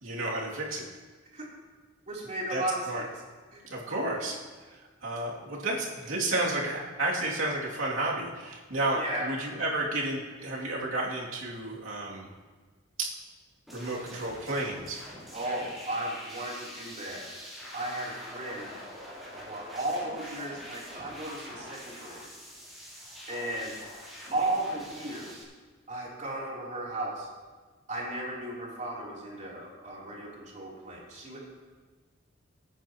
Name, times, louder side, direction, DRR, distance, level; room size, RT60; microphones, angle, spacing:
voice 1, 0.0-0.9 2.5-3.0 3.7-4.4 5.0-12.3 13.0-13.1 13.7-15.0, right 2 dB, 90° right, -4 dB, 2.6 m, -31 dB
voice 2, 2.1-3.1 3.5-3.6 8.9-9.3 15.3-17.2 17.7-18.7 19.3-22.2 23.3-23.7 24.3-25.4 25.9-27.3 27.9-31.4, right 1 dB, 40° right, -5 dB, 3.2 m, -35 dB
sound 1, 13.7-25.4, equal, ahead, 3.5 m, -45 dB
23.5 x 9.1 x 3.0 m, 1.4 s
head